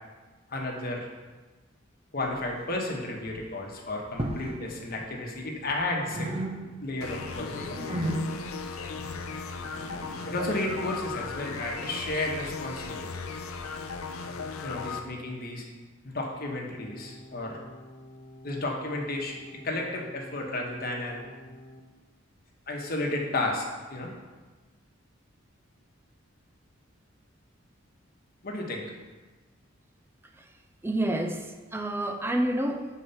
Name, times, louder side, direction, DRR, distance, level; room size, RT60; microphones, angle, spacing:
voice 1, 0.5-1.1 2.1-6.3 6.8-8.0 10.3-13.1 14.6-15.6 16.0-17.6 18.4-21.3 22.7-24.1 28.4-28.8, left 2 dB, 45° left, 0 dB, 1.2 m, -33 dB
sound 1, 2.2-2.9 3.2-3.5 4.1-4.6 4.9-5.8 6.0-7.0 7.3-11.0, right 1 dB, 30° right, 0.9 m, -36 dB
sound 2, 7.0-15.0, left 5 dB, 85° left, 0.6 m, -37 dB
sound 3, 16.7-21.8, equal, 15° left, 1.0 m, -49 dB
voice 2, 30.8-32.9, right 1 dB, 10° right, 5 dB, 0.5 m, -28 dB
7.1 x 4.6 x 5.6 m, 1.3 s
head